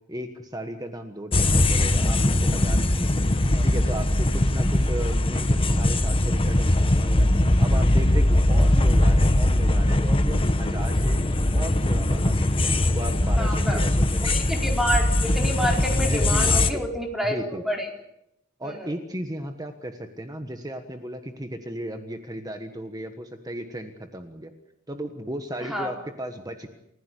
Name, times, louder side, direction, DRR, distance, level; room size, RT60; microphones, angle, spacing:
voice 1, 0.1-14.5 15.9-16.8 17.2-17.6 18.6-24.5 24.9-26.7, right 1 dB, 20° right, 6 dB, 1.4 m, -35 dB
sound 1, 1.3-16.7, left 1 dB, 25° left, 1.2 m, -21 dB
voice 2, 13.4-13.8 14.2-17.9 18.6-18.9 25.6-25.9, equal, ahead, 1 dB, 4.5 m, -28 dB
29.5 x 16.0 x 8.4 m, 0.82 s
head